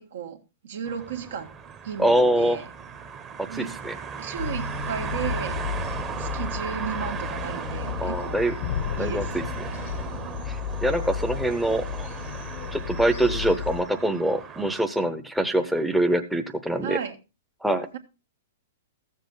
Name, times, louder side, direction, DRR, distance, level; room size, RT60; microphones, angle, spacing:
voice 1, 0.0-1.5 1.8-2.7 3.5-3.8 4.2-5.6 6.2-8.4 9.0-9.3 16.8-17.2, right 8 dB, 75° right, 1.9 m, -34 dB
sound 1, 0.8-14.8, right 6 dB, 20° right, 1.1 m, -37 dB
voice 2, 2.0-2.6 3.5-3.9 8.0-8.5 9.0-9.4 10.5-10.6 10.8-12.1 12.7-17.0 17.6-17.9, right 1 dB, ahead, 0.8 m, -24 dB
sound 2, 4.4-13.8, left 8 dB, 60° left, 0.9 m, -33 dB
14.0 x 7.4 x 3.9 m
hypercardioid pair, 140°, 0 cm